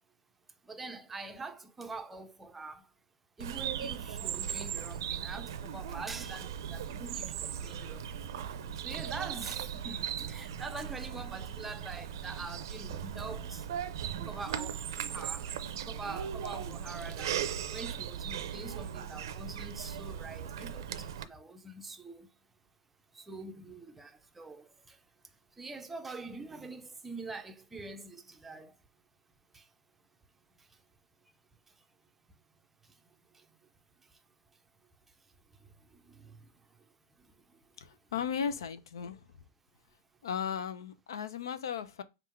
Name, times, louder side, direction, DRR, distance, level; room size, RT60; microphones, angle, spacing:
voice 1, 0.7-2.8 3.4-8.0 8.8-13.7 14.3-14.8 15.1-15.4 15.9-17.3 17.7-22.3 23.2-24.7 25.6-28.7 29.5-29.6 36.1-36.3, right 3 dB, 10° right, 0.5 m, -44 dB
Bird vocalization bird call bird song, 3.4-21.2, right 9 dB, 65° right, 0.5 m, -38 dB
voice 2, 37.8-39.3 40.2-42.0, left 7 dB, 85° left, 0.6 m, -36 dB
3.6 x 2.4 x 4.4 m
supercardioid pair, 150°, 2 cm